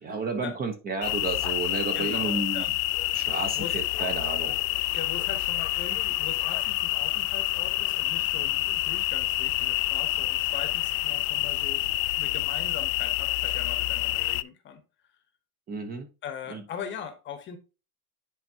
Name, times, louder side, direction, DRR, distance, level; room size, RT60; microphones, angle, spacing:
voice 1, 0.0-2.6 3.1-5.0 15.7-16.1 16.5-16.6, right 4 dB, 20° right, 0.9 m, -32 dB
sound 1, 1.0-14.4, left 18 dB, 65° left, 0.5 m, -28 dB
voice 2, 1.9-2.7 3.5-3.7 4.9-11.9 12.2-14.8 16.2-17.6, left 8 dB, 25° left, 1.1 m, -40 dB
10.0 x 4.4 x 2.8 m
supercardioid pair, 150°, 44 cm